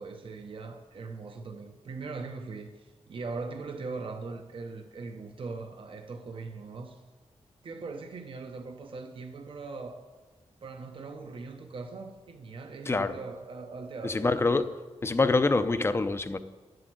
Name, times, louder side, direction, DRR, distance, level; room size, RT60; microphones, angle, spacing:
voice 1, 0.0-7.0 7.6-10.1 10.6-14.7, right 4 dB, 50° right, 0.9 m, -40 dB
voice 2, 12.9-13.2 14.0-14.6 15.0-16.4, left 3 dB, 20° left, 0.6 m, -25 dB
11.5 x 7.8 x 7.8 m
wide cardioid pair, 150°, 11 cm